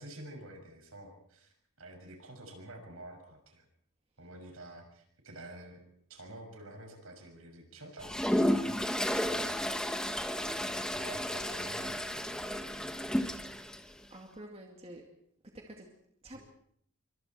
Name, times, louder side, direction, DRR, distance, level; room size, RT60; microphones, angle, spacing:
voice 1, 0.0-3.6 4.2-5.8 6.1-8.8 9.3-10.0 10.3-12.3 16.3-16.4, right 1 dB, 70° right, 4 dB, 6.4 m, -49 dB
Toilet flush, 8.0-13.8, equal, 5° left, 1.2 m, -32 dB
voice 2, 14.1-15.0 15.5-15.9 16.2-16.4, right 1 dB, 30° right, 1 dB, 2.3 m, -48 dB
27.0 x 24.5 x 4.5 m, 0.67 s
head